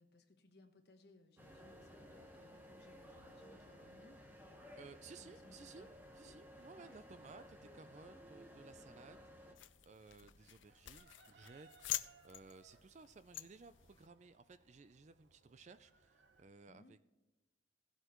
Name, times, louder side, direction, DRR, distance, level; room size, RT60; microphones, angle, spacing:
voice 1, 0.0-4.2 5.2-5.9 6.2-6.3 6.8-6.9 16.7-16.9, left 2 dB, 55° left, 5 dB, 1.2 m, -65 dB
sound 1, 1.4-9.5, equal, 10° right, 1.2 m, -57 dB
voice 2, 4.8-17.0, right 4 dB, 35° right, 13 dB, 0.4 m, -58 dB
sound 2, 9.6-14.1, left 14 dB, 80° left, 0.5 m, -47 dB
Chicken rooster, 9.7-16.4, right 4 dB, 70° right, 1.1 m, -68 dB
16.5 x 7.9 x 3.1 m, 1.1 s
head